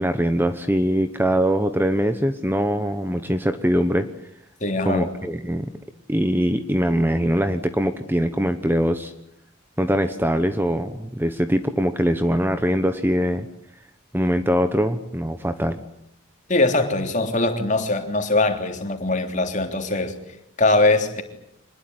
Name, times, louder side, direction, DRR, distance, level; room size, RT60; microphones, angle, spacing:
voice 1, 0.0-4.1 4.8-5.7 6.1-9.1 9.8-13.5 14.1-15.8, equal, 10° right, 1.0 m, -22 dB
voice 2, 4.6-5.1 16.5-20.1 20.6-21.2, left 2 dB, 35° left, 3.4 m, -21 dB
25.5 x 20.5 x 9.6 m
head